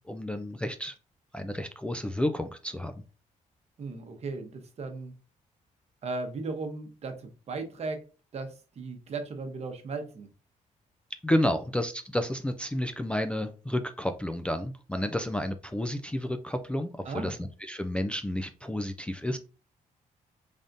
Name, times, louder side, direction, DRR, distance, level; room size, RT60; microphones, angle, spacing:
voice 1, 0.1-0.9 1.3-3.0 11.2-19.4, left 1 dB, 10° left, 6 dB, 0.3 m, -31 dB
voice 2, 3.8-5.1 6.0-8.0 8.3-10.3 11.4-11.5 17.0-17.3, right 3 dB, 50° right, 6 dB, 0.9 m, -36 dB
3.9 x 3.5 x 2.6 m, 0.35 s
cardioid pair, 120°, 14 cm